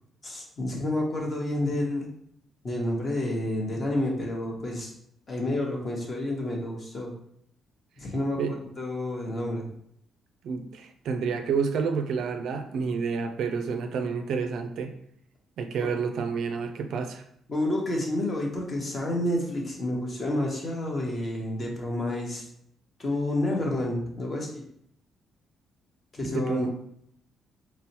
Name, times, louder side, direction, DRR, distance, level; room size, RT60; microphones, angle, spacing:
voice 1, 0.2-2.1 2.6-4.9 5.3-7.1 8.0-8.4 8.8-9.7 15.8-15.9 17.5-22.5 23.0-24.6 26.1-26.7, left 1 dB, 35° left, -1 dB, 0.9 m, -29 dB
voice 2, 10.4-14.9 15.6-17.2 26.2-26.7, right 5 dB, 75° right, 7 dB, 0.3 m, -29 dB
4.0 x 2.0 x 2.7 m, 0.71 s
cardioid pair, 90°, 0 cm